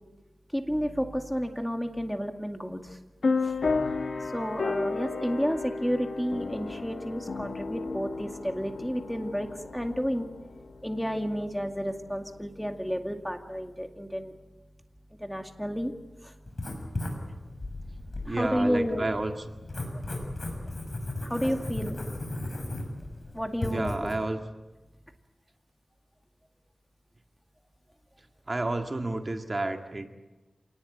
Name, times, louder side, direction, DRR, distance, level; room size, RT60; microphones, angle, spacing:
voice 1, 0.5-3.0 3.4-3.7 4.2-10.3 10.8-14.3 15.2-15.9 16.2-16.4 18.2-19.1 19.9-20.0 21.2-22.0 23.3-24.1, equal, ahead, 5 dB, 2.2 m, -31 dB
sound 1, 3.2-11.3, left 4 dB, 75° left, 1.7 m, -32 dB
Writing, 16.5-24.1, left 1 dB, 45° left, 6.4 m, -36 dB
voice 2, 18.2-19.3 23.7-24.4 28.5-30.1, right 2 dB, 35° right, 5 dB, 1.9 m, -30 dB
27.5 x 19.0 x 9.1 m, 1.1 s
wide cardioid pair, 80°, 0 cm